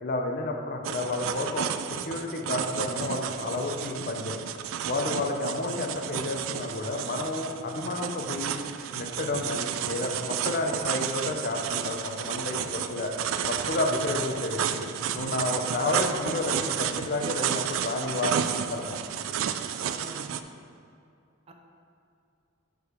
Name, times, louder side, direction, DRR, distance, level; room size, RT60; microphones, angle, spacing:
voice 1, 0.0-1.7 2.1-4.3 4.8-8.6 8.9-13.1 13.4-14.9 15.1-19.0, left 2 dB, 50° left, 2 dB, 0.6 m, -31 dB
sound 1, 0.8-20.4, right 9 dB, 85° right, 0.3 m, -32 dB
voice 2, 15.8-16.2 19.8-20.4 21.5-21.6, right 1 dB, 30° right, 3 dB, 0.6 m, -44 dB
6.8 x 4.9 x 5.0 m, 2.4 s
head